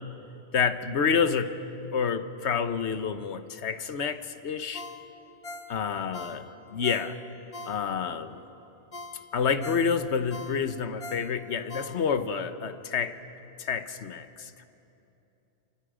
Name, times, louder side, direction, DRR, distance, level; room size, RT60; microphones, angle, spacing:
voice 1, 0.5-1.6 1.9-4.8 5.7-6.5 6.7-7.2 7.7-8.4 9.3-13.2 13.6-14.6, left 6 dB, 80° left, 10 dB, 1.3 m, -28 dB
Ringtone, 4.7-8.2 8.6-8.7 8.9-12.4 12.8-12.9, left 2 dB, 30° left, 1.4 m, -43 dB
29.0 x 27.5 x 5.0 m, 2.9 s
omnidirectional pair, 1.1 m